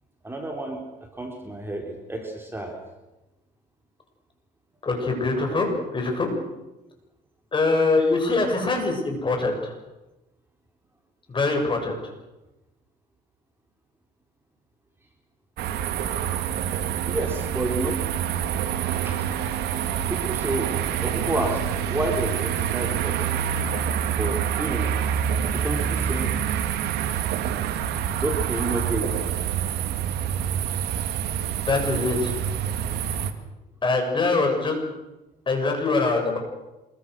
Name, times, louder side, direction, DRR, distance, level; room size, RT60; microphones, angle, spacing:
voice 1, 0.2-0.8 1.1-2.7 17.1-18.0 19.0-19.2 20.1-20.7 21.0-21.6 21.9-23.2 24.2-24.9 25.5-26.3 28.2-29.2, right 1 dB, 15° right, 2 dB, 4.2 m, -29 dB
voice 2, 4.8-6.3 7.5-9.7 11.3-11.9 31.5-32.4 33.8-34.8 35.5-36.4, left 3 dB, 30° left, 3 dB, 7.4 m, -23 dB
sound 1, 15.6-33.3, right 9 dB, 80° right, 2.3 m, -26 dB
27.0 x 23.0 x 6.5 m, 1.0 s
cardioid pair, 110°, 17 cm